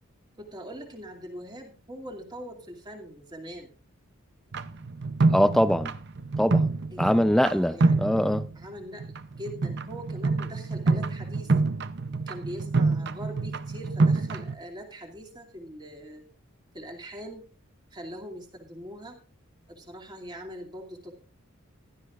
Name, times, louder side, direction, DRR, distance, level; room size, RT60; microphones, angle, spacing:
voice 1, 0.4-3.7 6.9-8.0 8.5-11.6 12.3-16.2 16.7-17.4 17.9-19.2 19.7-21.1, equal, 20° right, 2.5 m, -42 dB
sound 1, 4.5-7.5 7.8-8.7 9.0-14.5, right 3 dB, 55° right, 0.7 m, -27 dB
voice 2, 5.3-5.9 6.4-6.7 7.0-8.4, equal, ahead, 0.5 m, -23 dB
16.0 x 13.0 x 2.5 m
head